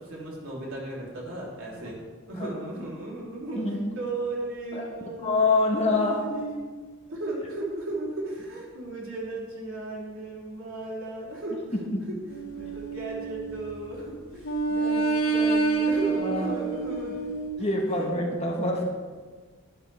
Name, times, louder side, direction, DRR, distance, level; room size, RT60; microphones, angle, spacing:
voice 1, 0.0-2.0 2.3-3.6 3.9-5.4 5.8-11.6 12.1-12.2 12.5-17.2 17.6-17.7 18.0-18.1, right 2 dB, 65° right, -4 dB, 3.6 m, -35 dB
voice 2, 3.5-3.9 4.7-4.9 5.2-6.2 11.7-12.0 16.2-16.5 17.6-18.8, left 2 dB, 30° left, -1 dB, 1.4 m, -25 dB
sound 1, 12.3-14.0 14.4-17.5, right 4 dB, 75° left, 1.9 m, -27 dB
12.0 x 11.5 x 3.6 m, 1.4 s
head